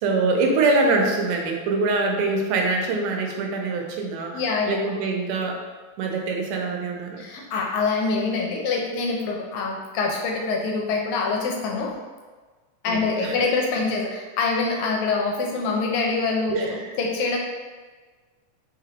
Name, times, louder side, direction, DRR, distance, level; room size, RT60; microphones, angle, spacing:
voice 1, 0.0-5.6 6.0-7.2 12.9-13.4 16.5-16.9, right 3 dB, 85° right, 2 dB, 2.2 m, -24 dB
voice 2, 4.3-4.8 7.2-11.9 12.8-17.4, left 4 dB, 80° left, 0 dB, 1.9 m, -25 dB
4.9 x 3.4 x 2.8 m, 1.4 s
omnidirectional pair, 3.6 m